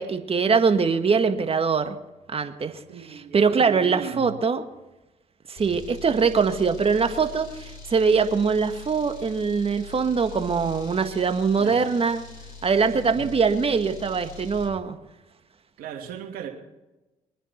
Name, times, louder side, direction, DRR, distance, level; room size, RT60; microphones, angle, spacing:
voice 1, 0.0-2.0 2.3-2.8 3.3-4.6 5.5-12.2 12.6-15.0, right 5 dB, 40° right, 8 dB, 1.7 m, -22 dB
voice 2, 2.9-4.3 11.6-11.8 12.9-13.2 15.8-16.5, right 8 dB, 75° right, 2 dB, 2.6 m, -37 dB
sound 1, 5.6-14.8, left 4 dB, 75° left, 5.0 m, -43 dB
23.5 x 10.0 x 4.5 m, 1.0 s
hypercardioid pair, 60°, 15 cm